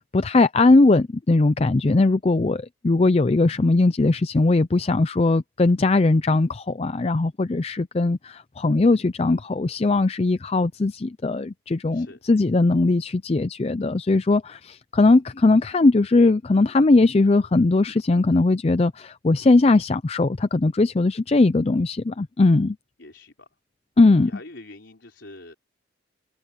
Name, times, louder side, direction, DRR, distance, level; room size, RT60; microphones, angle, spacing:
voice 1, 0.0-22.8 24.0-24.3, left 2 dB, 30° left, 0.4 m, -19 dB
voice 2, 23.0-23.5 24.3-25.5, left 2 dB, 75° left, 3.9 m, -44 dB
head